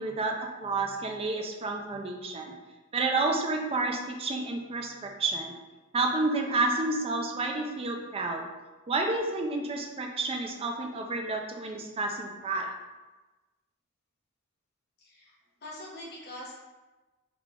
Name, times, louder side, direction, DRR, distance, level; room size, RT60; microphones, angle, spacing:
voice 1, 0.0-2.5 2.9-5.5 5.9-8.5 8.9-12.7, right 3 dB, 25° right, 2 dB, 0.4 m, -30 dB
voice 2, 15.0-16.5, left 1 dB, 50° left, -5 dB, 0.9 m, -44 dB
3.6 x 2.4 x 3.5 m, 1.2 s
head